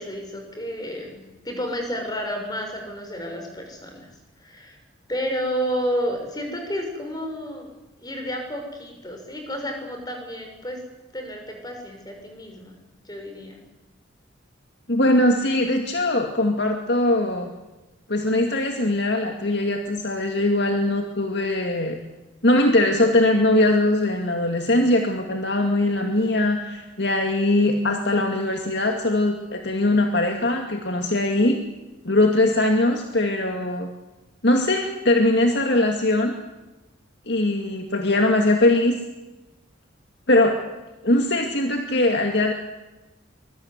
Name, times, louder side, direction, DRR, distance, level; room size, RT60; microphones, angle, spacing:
voice 1, 0.0-4.1 4.4-4.8 5.1-10.8 11.1-12.8 13.0-13.6, equal, 20° left, 3 dB, 6.4 m, -31 dB
voice 2, 14.9-17.5 18.1-22.0 22.4-31.6 32.0-33.9 34.4-36.3 37.3-39.0 40.3-40.6 41.0-42.5, left 1 dB, 60° left, 4 dB, 2.3 m, -21 dB
24.5 x 22.0 x 9.7 m, 1.1 s
head